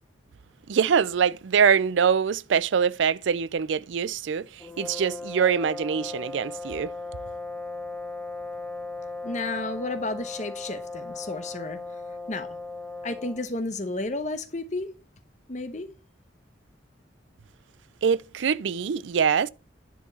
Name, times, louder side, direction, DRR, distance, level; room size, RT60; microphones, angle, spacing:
voice 1, 0.7-6.9 18.0-19.5, right 7 dB, 80° right, 0.4 m, -24 dB
sound 1, 4.6-13.5, left 3 dB, 10° left, 1.5 m, -37 dB
voice 2, 9.2-11.8 12.3-12.6 13.0-14.9 15.5-15.9, left 2 dB, 40° left, 1.0 m, -32 dB
10.0 x 4.5 x 5.9 m
head